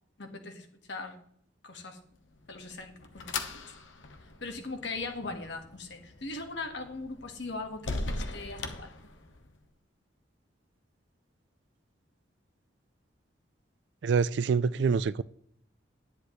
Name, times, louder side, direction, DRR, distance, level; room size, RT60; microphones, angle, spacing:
voice 1, 0.2-1.2 1.6-2.0 2.5-3.6 4.4-8.9, left 3 dB, 65° left, 1.6 m, -40 dB
sound 1, 2.2-9.6, left 3 dB, 90° left, 1.0 m, -40 dB
voice 2, 14.0-15.2, right 5 dB, 65° right, 0.4 m, -26 dB
10.5 x 9.8 x 3.1 m
head